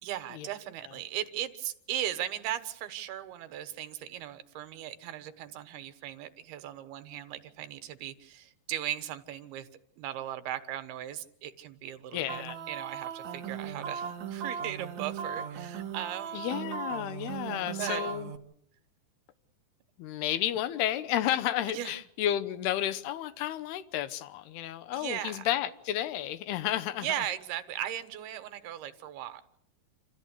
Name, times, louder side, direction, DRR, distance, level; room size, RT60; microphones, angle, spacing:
voice 1, 0.0-9.7 10.0-16.5 17.8-18.1 21.7-21.9 24.9-25.4 27.0-29.4, right 11 dB, 80° right, 3.3 m, -37 dB
voice 2, 12.1-12.6 16.3-18.3 20.0-27.1, left 12 dB, 85° left, 3.0 m, -32 dB
sound 1, 12.3-18.4, right 7 dB, 55° right, 2.4 m, -38 dB
28.0 x 14.5 x 8.4 m
omnidirectional pair, 4.5 m